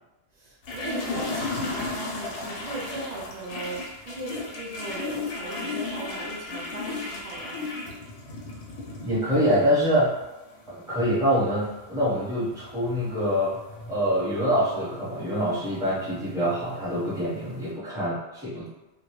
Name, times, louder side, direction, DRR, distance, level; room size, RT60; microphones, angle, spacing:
voice 1, 0.3-7.7, right 2 dB, 55° right, -5 dB, 0.4 m, -38 dB
sound 1, 0.6-17.7, left 3 dB, 70° left, 0.8 m, -36 dB
voice 2, 9.0-10.1 10.7-13.5 13.9-18.7, equal, 5° right, -9 dB, 0.8 m, -25 dB
2.2 x 2.0 x 2.9 m, 1.0 s
omnidirectional pair, 1.3 m